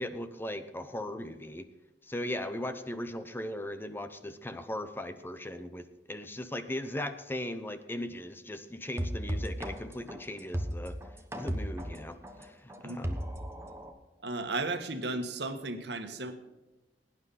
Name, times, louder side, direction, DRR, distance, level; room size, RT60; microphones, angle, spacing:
voice 1, 0.0-1.7 2.1-11.0 11.3-13.2, left 1 dB, 10° left, 10 dB, 0.7 m, -38 dB
sound 1, 9.0-13.9, equal, 15° right, 1.2 m, -35 dB
voice 2, 14.2-16.3, right 2 dB, 70° right, 7 dB, 1.5 m, -34 dB
17.5 x 9.7 x 4.2 m, 1.1 s
head